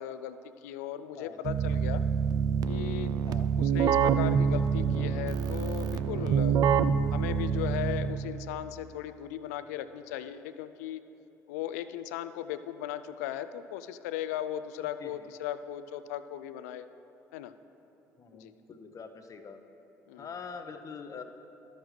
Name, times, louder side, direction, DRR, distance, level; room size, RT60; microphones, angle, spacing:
voice 1, 0.0-2.1 2.7-3.1 3.6-6.6 7.1-11.0 11.5-16.9 17.3-17.5 18.3-18.5 20.1-20.3, left 11 dB, 75° left, 12 dB, 0.3 m, -37 dB
Keyboard (musical), 1.4-8.3, right 7 dB, 50° right, 0.4 m, -26 dB
voice 2, 18.2-19.6 20.2-21.2, left 5 dB, 40° left, 7 dB, 0.7 m, -44 dB
12.5 x 6.4 x 3.2 m, 2.9 s
hypercardioid pair, 55°, 9 cm